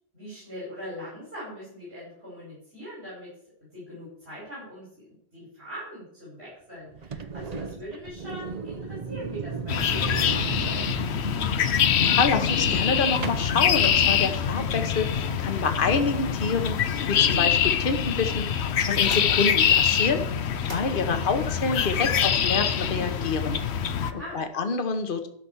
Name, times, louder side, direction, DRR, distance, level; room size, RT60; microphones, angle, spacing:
voice 1, 0.1-3.3 3.7-5.0 5.3-10.8 23.9-24.4, equal, 80° right, -7 dB, 5.5 m, -41 dB
sound 1, 6.9-14.7, right 5 dB, 45° right, 0.7 m, -37 dB
sound 2, 9.7-24.1, left 8 dB, 90° left, 1.0 m, -24 dB
voice 2, 12.0-20.2 20.6-23.6 24.1-25.3, left 4 dB, 55° left, 7 dB, 1.2 m, -27 dB
sound 3, 18.5-24.4, right 1 dB, 25° right, 1.4 m, -48 dB
12.0 x 6.0 x 6.9 m, 0.70 s
omnidirectional pair, 1.1 m